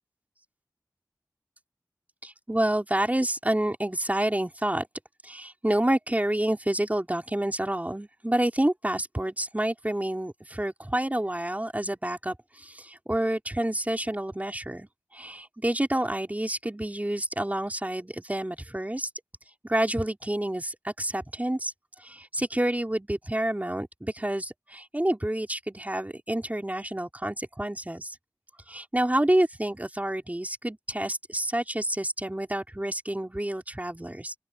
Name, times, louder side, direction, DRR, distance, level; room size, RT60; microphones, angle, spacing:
voice 1, 2.2-4.9 5.2-14.9 15.1-19.1 19.7-21.7 22.0-28.1 28.7-34.3, right 1 dB, 20° right, 4.3 m, -28 dB
open air
wide cardioid pair, 50°, 7 cm